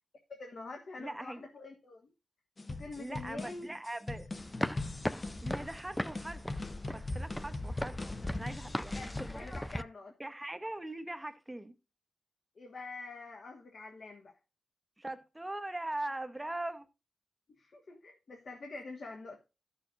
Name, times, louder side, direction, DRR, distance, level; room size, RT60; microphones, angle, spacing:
voice 1, 0.3-2.1 2.8-3.7 8.9-10.1 12.5-14.3 17.6-19.4, left 3 dB, 60° left, 1.5 m, -46 dB
voice 2, 1.0-1.5 3.0-4.3 5.4-6.5 6.9-8.0 8.4-9.1 9.4-9.5 10.2-11.7 15.0-16.9, right 1 dB, 10° right, 0.8 m, -41 dB
sound 1, 2.6-9.4, left 2 dB, 30° left, 0.7 m, -42 dB
sound 2, 4.4-9.8, left 1 dB, 5° left, 0.4 m, -38 dB
15.0 x 6.6 x 2.4 m
wide cardioid pair, 120°, 0 cm